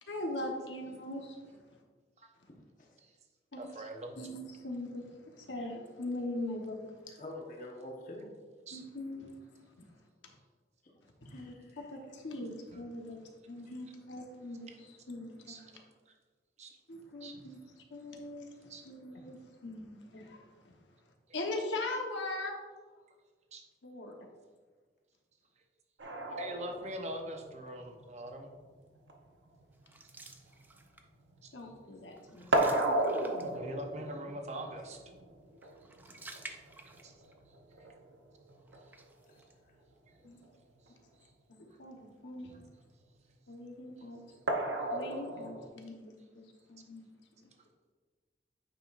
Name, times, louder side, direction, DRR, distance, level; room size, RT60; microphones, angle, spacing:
voice 1, 0.1-1.4 3.5-3.7 4.2-6.8 8.7-9.9 11.2-13.2 13.5-15.8 16.9-17.6 17.9-19.4 19.6-20.7 21.3-22.6 23.8-24.2 31.5-32.5 40.2-40.4 41.5-42.6 43.5-44.2 44.9-46.1 46.7-47.1, left 2 dB, 90° left, 1 dB, 1.1 m, -41 dB
voice 2, 2.5-3.0 7.2-8.3 11.2-11.8 13.7-13.8, left 1 dB, 45° left, -1 dB, 1.1 m, -46 dB
voice 3, 3.6-4.2 8.7-8.8 9.2-9.3 15.5-15.8 16.6-16.7 17.2-17.3 18.7-18.8 23.5-23.6 26.3-28.5 31.4-31.5 32.4-32.5 33.5-35.0 37.0-37.1 41.2-41.3, right 1 dB, 35° right, 3 dB, 0.7 m, -42 dB
sound 1, 26.0-31.7 32.0-39.0 40.4-40.5 40.9-41.0 44.5-45.7, right 1 dB, 85° right, 0.8 m, -35 dB
sound 2, 29.8-31.2 31.6-31.8 32.1-33.8 35.6-37.4 37.7-37.8 38.7-39.5, right 2 dB, 10° right, 0.3 m, -50 dB
9.0 x 5.4 x 2.5 m, 1.4 s
head